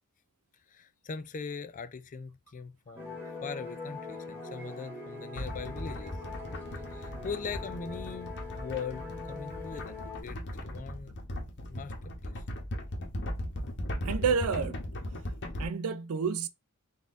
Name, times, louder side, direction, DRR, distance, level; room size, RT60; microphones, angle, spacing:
voice 1, 0.7-6.1 6.9-11.1 11.7-11.9 12.2-12.4, left 5 dB, 35° left, 0.4 m, -41 dB
sound 1, 2.9-10.2, left 3 dB, 10° right, 1.5 m, -42 dB
sound 2, 5.4-15.6, equal, 55° left, 1.0 m, -38 dB
voice 2, 14.1-14.8 15.6-16.5, right 5 dB, 70° right, 0.4 m, -29 dB
4.1 x 2.6 x 3.5 m
head